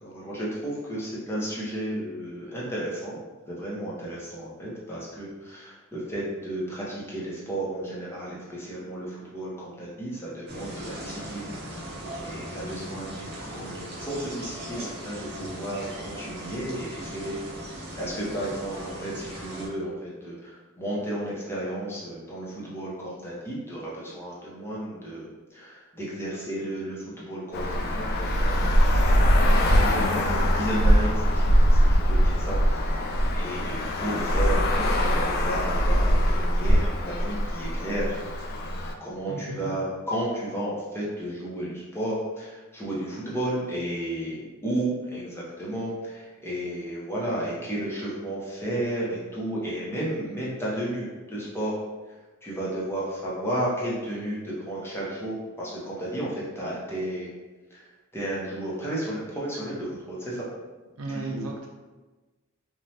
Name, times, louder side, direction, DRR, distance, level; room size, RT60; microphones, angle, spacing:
voice 1, 0.0-3.2 3.5-11.8 12.2-17.4 17.9-33.1 33.3-38.6 39.0-51.8 52.4-57.3 57.7-57.9 58.1-60.5 61.3-61.4, right 1 dB, 10° left, -6 dB, 0.7 m, -33 dB
sound 1, 10.5-19.7, right 1 dB, 50° right, 0.8 m, -38 dB
Traffic noise roadway noise, 27.5-38.9, equal, 50° left, 0.3 m, -22 dB
voice 2, 39.3-39.7 61.0-61.7, right 2 dB, 85° right, -1 dB, 0.6 m, -35 dB
3.1 x 2.3 x 2.7 m, 1.2 s
head